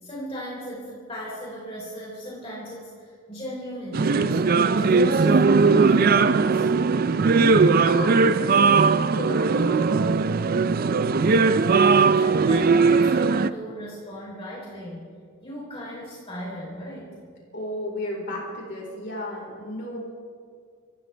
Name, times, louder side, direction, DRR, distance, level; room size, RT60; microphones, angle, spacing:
voice 1, 0.0-6.7 11.0-15.1 15.4-17.3, equal, 25° left, -6 dB, 3.7 m, -37 dB
sound 1, 3.9-13.5, right 4 dB, 40° right, 0.4 m, -19 dB
voice 2, 7.1-10.0 17.5-20.0, left 1 dB, 55° left, -3 dB, 4.2 m, -34 dB
26.5 x 15.5 x 3.4 m, 2.2 s
head